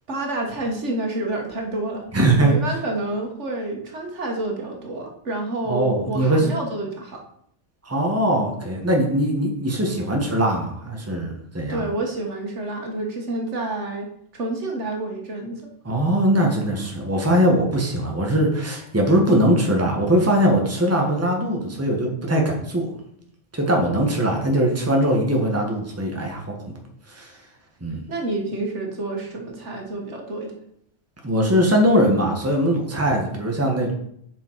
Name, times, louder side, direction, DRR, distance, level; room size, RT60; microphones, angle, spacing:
voice 1, 0.1-2.0 2.4-7.2 11.7-15.7 28.1-30.5, right 2 dB, 70° right, 1 dB, 1.7 m, -28 dB
voice 2, 2.1-2.8 5.7-6.5 7.8-11.8 15.8-22.9 23.5-26.6 27.1-27.4 27.8-28.0 31.2-33.9, right 1 dB, 15° right, 1 dB, 1.3 m, -21 dB
7.0 x 6.0 x 4.6 m, 0.70 s
omnidirectional pair, 1.2 m